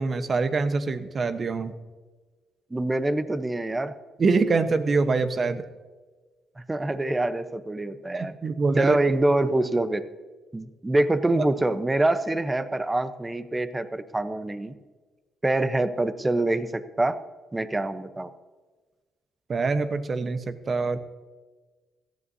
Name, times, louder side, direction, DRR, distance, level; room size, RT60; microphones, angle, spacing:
voice 1, 0.0-1.7 4.2-5.6 8.1-9.0 19.5-21.0, right 4 dB, 40° right, 10 dB, 1.0 m, -24 dB
voice 2, 2.7-3.9 6.6-8.3 8.8-10.1 10.5-14.7 15.4-17.2 17.5-18.3, right 2 dB, 15° right, 12 dB, 0.8 m, -25 dB
17.0 x 12.5 x 2.7 m, 1.3 s
cardioid pair, 90°, 0 cm